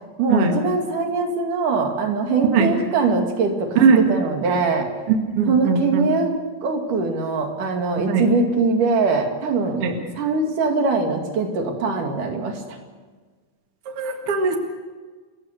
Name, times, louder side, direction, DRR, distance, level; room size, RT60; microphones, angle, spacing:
voice 1, 0.2-4.9 5.5-6.3 6.6-9.8 10.2-12.8, right 4 dB, 80° right, 3 dB, 4.0 m, -22 dB
voice 2, 3.8-4.1 5.1-6.1 8.1-8.3 9.8-10.0 13.9-14.6, right 5 dB, 50° right, 4 dB, 2.6 m, -19 dB
29.5 x 15.0 x 6.7 m, 1.4 s
omnidirectional pair, 3.6 m